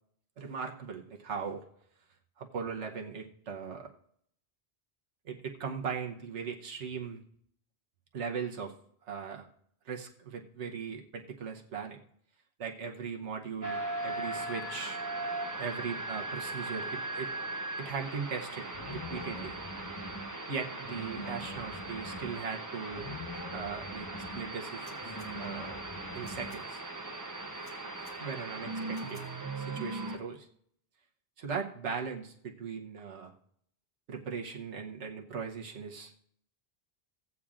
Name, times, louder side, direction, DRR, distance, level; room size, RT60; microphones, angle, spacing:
voice 1, 0.4-1.6 2.4-3.9 5.2-7.2 8.1-8.7 9.0-9.5 9.8-12.0 12.6-15.0 15.6-17.3 17.8-19.6 20.5-23.1 23.5-24.1 24.3-25.8 26.1-26.8 28.2-29.2 29.5-30.5 31.4-33.3 34.1-36.2, right 6 dB, 85° right, 0 dB, 1.3 m, -39 dB
sound 1, 13.6-30.2, right 2 dB, 20° right, 0.7 m, -39 dB
sound 2, 18.7-20.3 20.8-22.4 22.9-24.5 25.0-26.6, left 1 dB, 25° left, 0.8 m, -44 dB
sound 3, 24.8-25.3 26.1-26.6 27.5-28.2 28.9-29.3, equal, 5° left, 2.2 m, -58 dB
16.5 x 8.5 x 2.5 m, 0.67 s
omnidirectional pair, 1.2 m